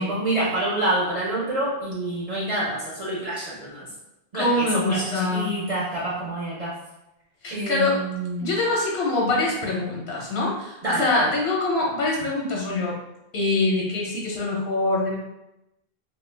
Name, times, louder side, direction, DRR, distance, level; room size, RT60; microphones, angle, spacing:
voice 1, 0.0-3.9 4.3-6.8 7.5-8.5 10.8-11.2, right 1 dB, 45° right, -7 dB, 0.6 m, -27 dB
voice 2, 4.3-5.5 7.4-8.0 8.4-13.0 13.3-15.2, left 2 dB, 90° left, -2 dB, 0.9 m, -24 dB
2.2 x 2.1 x 3.2 m, 0.90 s
omnidirectional pair, 1.0 m